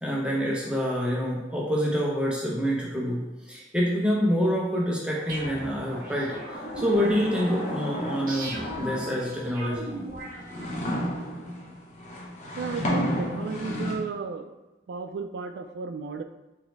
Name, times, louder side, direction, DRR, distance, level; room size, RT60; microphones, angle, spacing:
voice 1, 0.0-9.9, equal, 5° right, -4 dB, 0.6 m, -27 dB
sound 1, 5.1-9.5 10.1-14.0, left 1 dB, 45° left, 0.8 m, -33 dB
sound 2, 5.3-11.1, right 2 dB, 50° right, 0.8 m, -40 dB
voice 2, 12.6-14.6 14.9-16.2, right 4 dB, 75° right, 8 dB, 0.3 m, -33 dB
3.8 x 3.1 x 3.1 m, 1.1 s
head